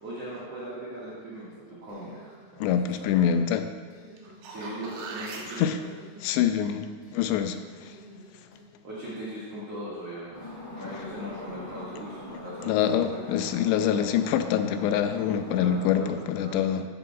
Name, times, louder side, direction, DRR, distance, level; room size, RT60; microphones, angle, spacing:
voice 1, 0.0-2.7 3.1-3.4 4.5-5.7 8.8-13.4 15.6-16.1 16.4-16.6, right 1 dB, 50° right, -8 dB, 2.2 m, -39 dB
sound 1, 1.9-2.8 3.1-3.5 3.9-4.8 5.8-6.7 7.0-8.7, right 1 dB, 45° left, 2.4 m, -52 dB
voice 2, 2.6-3.7 5.6-5.8 6.2-7.9 12.7-16.9, left 9 dB, 85° left, 8 dB, 2.7 m, -25 dB
sound 2, 4.2-5.6 10.4-10.5, right 4 dB, 80° right, 3.3 m, -40 dB
sound 3, 10.3-15.8, left 2 dB, 25° left, 2.6 m, -42 dB
14.0 x 9.8 x 2.4 m, 1.5 s
omnidirectional pair, 5.0 m